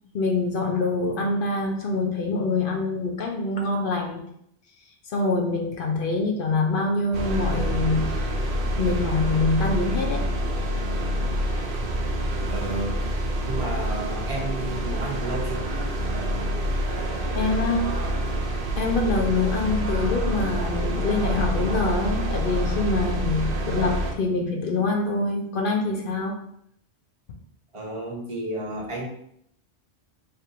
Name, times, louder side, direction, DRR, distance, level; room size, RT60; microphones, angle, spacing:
voice 1, 0.1-4.2 5.1-8.3 8.8-10.4 17.3-17.9 18.8-26.4, left 3 dB, 60° left, 1 dB, 0.7 m, -25 dB
sound 1, 7.1-24.1, equal, 60° right, 0.7 m, -27 dB
voice 2, 12.5-13.0 13.5-15.7 27.7-29.1, right 1 dB, 30° right, -2 dB, 0.9 m, -32 dB
3.3 x 2.4 x 4.4 m, 0.72 s
omnidirectional pair, 1.1 m